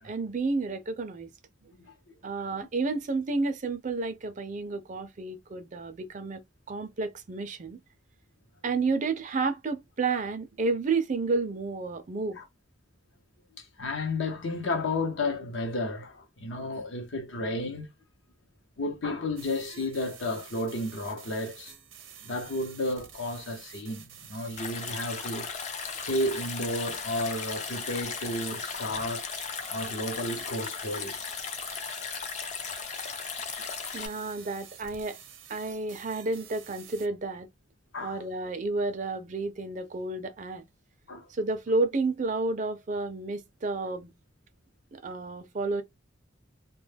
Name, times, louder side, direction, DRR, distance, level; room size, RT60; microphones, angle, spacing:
voice 1, 0.0-1.3 2.2-6.4 6.7-7.8 8.6-12.4 33.9-35.2 35.5-37.5 38.0-40.6 41.3-44.1 44.9-45.8, right 3 dB, 40° right, 0.4 m, -31 dB
voice 2, 1.8-2.5 12.4-12.5 13.5-17.9 18.8-21.7 22.2-25.5 26.0-29.3 29.7-31.2 37.9-38.2 41.1-41.3, left 2 dB, 70° left, 0.7 m, -32 dB
sound 1, 19.4-37.1, right 9 dB, 75° right, 0.7 m, -49 dB
Stream, 24.6-34.1, left 6 dB, 35° left, 0.4 m, -36 dB
2.2 x 2.1 x 3.3 m
head